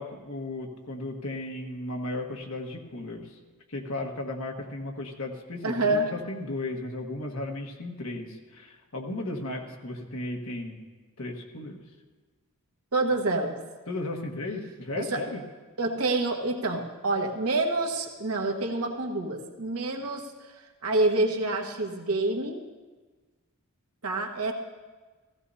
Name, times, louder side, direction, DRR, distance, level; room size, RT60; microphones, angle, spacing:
voice 1, 0.0-3.4 3.7-10.8 11.2-11.8 13.9-15.4, left 2 dB, 70° left, 1 dB, 1.5 m, -35 dB
voice 2, 5.6-6.1 12.9-13.6 14.9-15.2 15.8-20.5 20.8-22.6 24.0-24.5, right 2 dB, 85° right, 2 dB, 1.4 m, -27 dB
16.0 x 15.5 x 2.8 m, 1.3 s
head